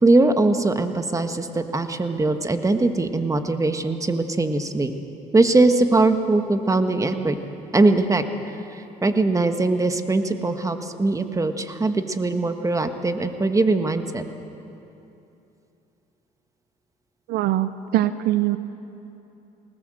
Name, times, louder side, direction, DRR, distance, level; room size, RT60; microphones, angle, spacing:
voice 1, 0.0-4.9 5.3-7.4 7.7-14.2, right 2 dB, 20° right, 8 dB, 1.6 m, -21 dB
voice 2, 17.3-18.6, right 14 dB, 80° right, 13 dB, 0.7 m, -22 dB
19.5 x 19.5 x 7.8 m, 2.9 s
supercardioid pair, 75°, 16 cm